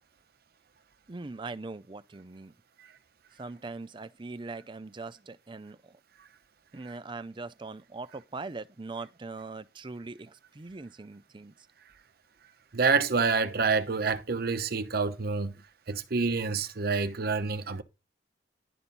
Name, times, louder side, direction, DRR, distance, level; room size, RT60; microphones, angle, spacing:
voice 1, 1.1-2.5 3.3-6.0 6.7-11.7 15.5-15.6, right 3 dB, 25° right, 0.5 m, -41 dB
voice 2, 12.7-15.5 15.9-17.8, right 4 dB, 55° right, 0.8 m, -27 dB
11.0 x 4.4 x 5.2 m
head